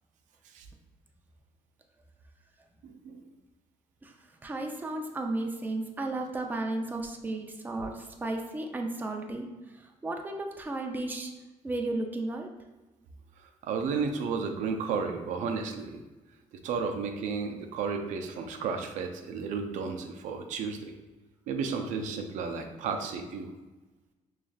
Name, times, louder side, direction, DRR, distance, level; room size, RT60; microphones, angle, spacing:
voice 1, 2.8-3.2 13.6-16.0 16.6-20.9 21.5-23.5, right 5 dB, 85° right, 5 dB, 0.5 m, -33 dB
voice 2, 4.4-9.5 10.0-11.3 11.6-12.5, right 2 dB, 15° right, 2 dB, 0.5 m, -34 dB
4.9 x 3.1 x 2.3 m, 1.1 s
cardioid pair, 110°, 12 cm